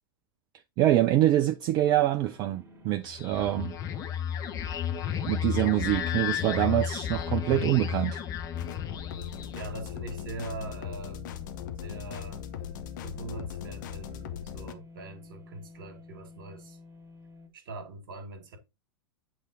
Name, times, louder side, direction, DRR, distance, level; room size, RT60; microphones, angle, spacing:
voice 1, 0.8-3.7 5.3-8.2, right 13 dB, 35° right, 0.5 m, -25 dB
sound 1, 2.0-17.5, left 3 dB, 15° right, 1.8 m, -51 dB
sound 2, 3.1-9.7, left 9 dB, 30° left, 0.8 m, -33 dB
sound 3, 8.5-14.7, left 9 dB, 50° left, 0.9 m, -39 dB
voice 2, 9.5-11.3 11.8-12.4 13.0-16.8 17.5-18.6, right 2 dB, 55° right, 2.1 m, -42 dB
8.2 x 3.5 x 4.1 m
figure-of-eight pair, 95°, 13 cm